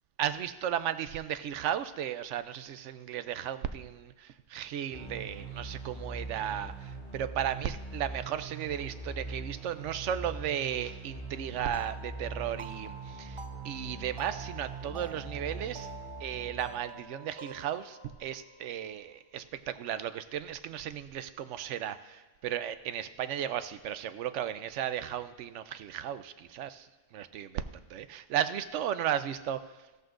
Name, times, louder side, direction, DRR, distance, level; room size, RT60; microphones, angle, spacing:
voice 1, 0.2-15.9 16.2-27.6 27.9-29.6, right 10 dB, 90° right, 12 dB, 0.9 m, -35 dB
sound 1, 4.9-16.9, right 3 dB, 10° left, 3.1 m, -42 dB
sound 2, 11.7-19.2, right 3 dB, 30° right, 0.6 m, -48 dB
15.0 x 14.0 x 2.5 m, 1.2 s
omnidirectional pair, 1.2 m